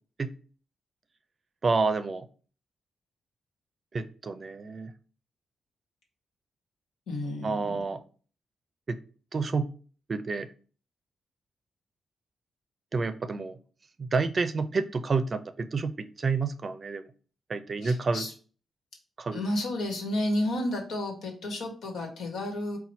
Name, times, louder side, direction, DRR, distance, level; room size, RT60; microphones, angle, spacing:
voice 1, 1.6-2.3 3.9-4.9 7.4-8.0 8.9-9.0 9.3-9.7 10.1-10.5 12.9-13.6 14.0-17.1 17.5-18.3 19.2-19.4, right 4 dB, 45° right, 11 dB, 0.4 m, -29 dB
voice 2, 7.1-7.8 17.8-18.3 19.3-22.8, left 1 dB, 85° left, 1 dB, 1.3 m, -31 dB
4.1 x 2.3 x 4.2 m, 0.39 s
cardioid pair, 75°, 0 cm